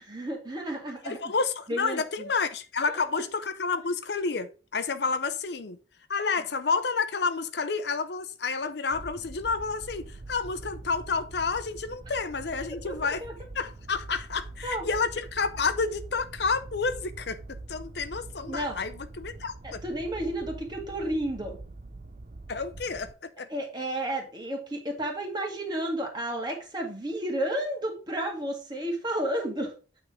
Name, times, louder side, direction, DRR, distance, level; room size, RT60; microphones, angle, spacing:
voice 1, 0.1-1.2 1.7-2.3 3.2-3.3 12.1-12.2 12.8-13.3 14.6-14.8 18.4-18.8 19.6-21.6 23.5-29.7, right 1 dB, 25° right, 2.1 m, -32 dB
voice 2, 1.0-5.8 6.1-13.2 13.5-17.4 17.7-19.8 22.5-23.5, left 4 dB, 65° left, 0.6 m, -30 dB
sound 1, 8.9-23.1, right 2 dB, 40° right, 0.6 m, -44 dB
9.0 x 3.7 x 4.9 m
head